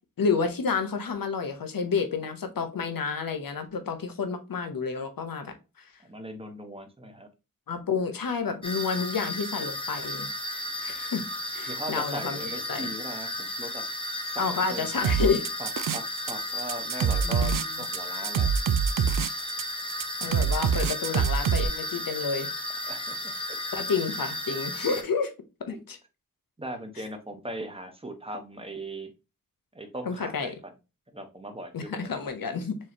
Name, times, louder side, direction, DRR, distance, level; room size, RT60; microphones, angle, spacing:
voice 1, 0.2-5.9 7.7-10.3 10.8-11.2 11.5-12.9 14.4-15.5 17.2-17.6 20.2-22.5 23.7-25.3 25.7-26.0 30.1-30.5 31.7-32.8, left 5 dB, 80° left, 0.9 m, -30 dB
voice 2, 6.0-7.3 11.7-13.8 14.2-15.3 15.6-17.5 17.8-18.5 22.9-23.6 25.7-25.8 26.6-29.1 29.7-30.6 31.1-32.2, right 1 dB, 15° right, 1.1 m, -39 dB
sound 1, 8.6-25.0, left 1 dB, 15° left, 0.9 m, -34 dB
sound 2, 15.0-16.3 16.6-21.7, right 7 dB, 70° right, 0.5 m, -25 dB
4.6 x 3.2 x 2.8 m
wide cardioid pair, 70°, 34 cm